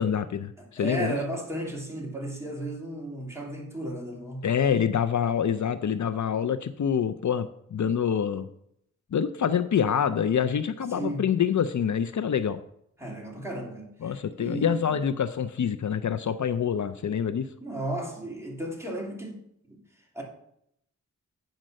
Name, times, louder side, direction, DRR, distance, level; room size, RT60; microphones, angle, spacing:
voice 1, 0.0-1.1 4.4-8.5 9.1-12.6 14.0-17.5, left 8 dB, 65° left, 11 dB, 0.5 m, -26 dB
voice 2, 0.6-4.5 10.9-11.3 13.0-15.0 17.6-19.4 19.7-19.8 20.1-20.2, right 1 dB, 10° right, -2 dB, 2.7 m, -34 dB
8.9 x 5.2 x 6.4 m, 0.74 s
wide cardioid pair, 90°, 31 cm